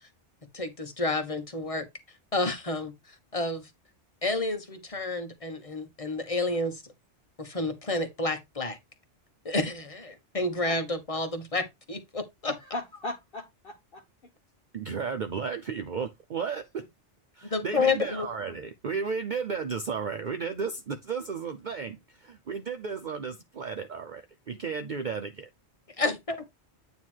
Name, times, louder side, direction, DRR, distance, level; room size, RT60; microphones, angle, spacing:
voice 1, 0.5-1.9 2.3-3.7 4.2-6.8 7.4-8.8 9.4-12.5 17.5-18.3 26.0-26.4, left 3 dB, 30° left, 1.3 m, -30 dB
voice 2, 12.5-14.3 26.0-26.1, left 2 dB, 50° left, 1.2 m, -38 dB
voice 3, 14.7-16.8 17.3-25.5, right 5 dB, 50° right, 0.7 m, -34 dB
9.3 x 3.1 x 4.5 m
omnidirectional pair, 1.2 m